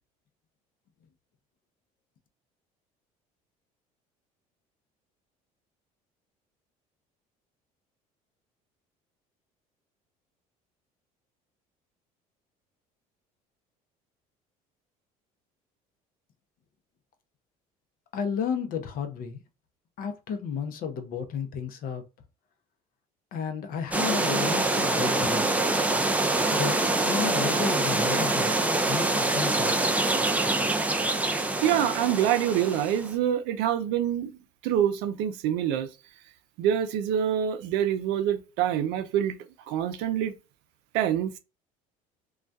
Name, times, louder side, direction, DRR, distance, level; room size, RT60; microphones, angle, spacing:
voice 1, 18.1-19.4 20.0-22.0 23.3-25.6 26.5-28.5 28.9-29.8, left 6 dB, 55° left, 0.6 m, -32 dB
sound 1, 23.9-33.1, right 2 dB, 10° right, 0.4 m, -25 dB
voice 2, 31.6-34.4 34.6-35.9 36.6-39.4 39.7-40.3 40.9-41.4, right 10 dB, 75° right, 0.5 m, -26 dB
2.3 x 2.2 x 2.5 m
supercardioid pair, 80°, 18 cm